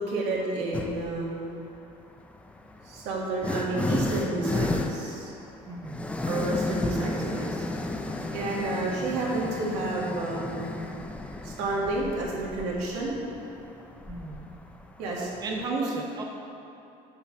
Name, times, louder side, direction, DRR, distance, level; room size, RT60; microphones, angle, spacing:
voice 1, 0.0-1.5 2.8-5.4 6.2-7.6 8.3-10.8 11.4-13.2 15.0-15.3 15.7-15.8, right 2 dB, 85° right, -4 dB, 1.7 m, -30 dB
sound 1, 0.7-1.2 2.2-15.7, left 2 dB, 5° left, 0.3 m, -33 dB
voice 2, 5.6-6.1 14.1-14.5 15.4-16.2, right 2 dB, 20° right, 0 dB, 0.7 m, -35 dB
5.7 x 4.7 x 6.5 m, 2.8 s
cardioid pair, 135°, 18 cm